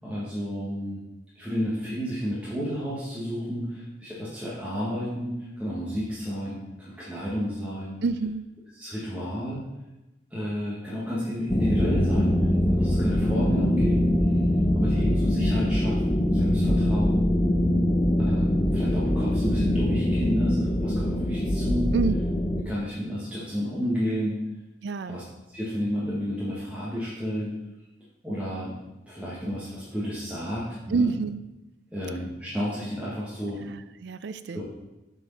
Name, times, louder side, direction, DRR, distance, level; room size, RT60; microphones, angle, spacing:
voice 1, 0.0-1.0 1.3-8.0 8.8-9.6 10.3-14.1 14.7-17.3 18.2-21.9 22.6-24.4 25.1-25.2 25.5-27.5 28.2-28.8 29.1-31.1 31.9-33.6 34.5-34.6, equal, 5° right, -9 dB, 1.4 m, -31 dB
voice 2, 8.0-8.5 21.9-22.1 24.8-25.2 30.9-31.4 33.6-34.6, right 4 dB, 65° right, 14 dB, 0.4 m, -27 dB
sound 1, 11.5-22.6, left 1 dB, 20° left, 0.6 m, -23 dB
7.2 x 4.6 x 5.3 m, 1.0 s
head